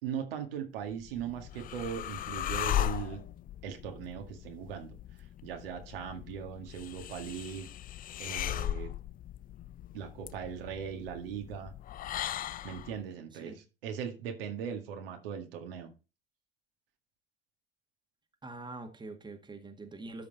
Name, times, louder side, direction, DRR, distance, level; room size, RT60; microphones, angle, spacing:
voice 1, 0.0-3.2 3.6-5.0 5.4-7.7 8.2-8.9 9.9-11.7 12.6-13.5 13.8-15.9, right 8 dB, 75° right, 2.1 m, -39 dB
sound 1, 0.9-13.0, left 12 dB, 30° left, 0.4 m, -38 dB
voice 2, 18.4-20.3, right 2 dB, 15° right, 1.8 m, -44 dB
13.0 x 5.3 x 4.1 m
hypercardioid pair, 70°, 29 cm